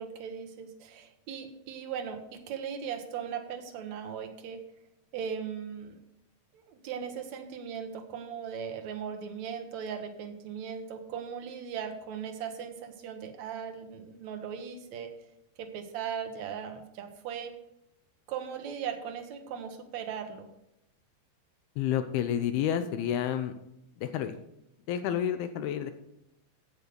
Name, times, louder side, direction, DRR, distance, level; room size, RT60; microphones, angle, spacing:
voice 1, 0.0-4.6 5.1-6.0 6.5-15.1 15.6-17.5 18.3-20.5, right 7 dB, 80° right, 5 dB, 1.6 m, -38 dB
voice 2, 21.8-23.5 24.0-24.3 24.9-25.9, left 9 dB, 80° left, 9 dB, 2.4 m, -29 dB
11.0 x 7.9 x 5.1 m, 0.84 s
omnidirectional pair, 4.9 m